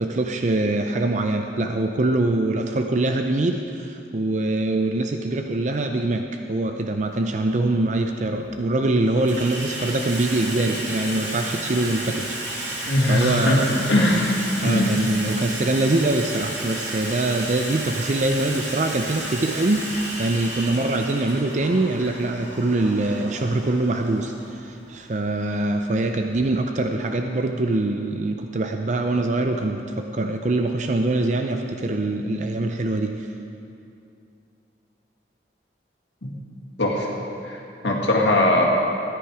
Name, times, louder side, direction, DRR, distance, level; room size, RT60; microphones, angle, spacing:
voice 1, 0.0-13.7 14.6-33.3, right 2 dB, 40° right, 5 dB, 0.5 m, -24 dB
Water tap faucet / Sink (filling or washing), 7.1-7.3 8.2-8.6 8.9-26.5, right 1 dB, 75° right, 2.9 m, -33 dB
voice 2, 12.9-14.9 36.2-36.3 36.8-37.1 37.4-38.7, left 1 dB, 85° left, -1 dB, 2.0 m, -20 dB
14.0 x 10.0 x 4.8 m, 2.6 s
head